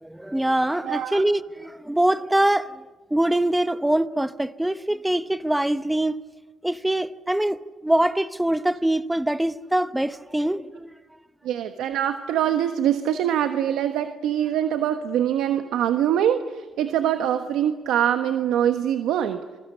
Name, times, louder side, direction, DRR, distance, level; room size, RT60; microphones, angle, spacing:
voice 1, 0.0-2.8 3.1-6.2 6.6-10.9, right 1 dB, 5° right, 0.9 m, -23 dB
voice 2, 0.8-1.2 11.4-19.4, right 10 dB, 85° right, 1.3 m, -23 dB
28.0 x 22.5 x 8.5 m
cardioid pair, 90°, 0 cm